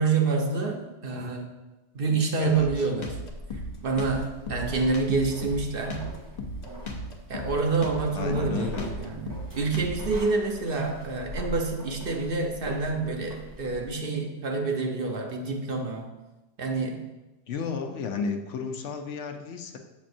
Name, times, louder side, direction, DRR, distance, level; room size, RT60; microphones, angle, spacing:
voice 1, 0.0-1.5 1.9-3.1 3.8-6.1 7.3-9.3 9.5-16.1 16.6-17.0, right 4 dB, 55° right, 3 dB, 0.8 m, -27 dB
Drum kit, 2.5-10.2, left 1 dB, 45° left, 0.7 m, -36 dB
sound 1, 3.3-13.9, equal, 20° right, 0.7 m, -41 dB
voice 2, 8.1-8.9 17.5-19.8, left 5 dB, 75° left, 5 dB, 1.0 m, -32 dB
7.3 x 6.2 x 2.6 m, 1.1 s
omnidirectional pair, 1.3 m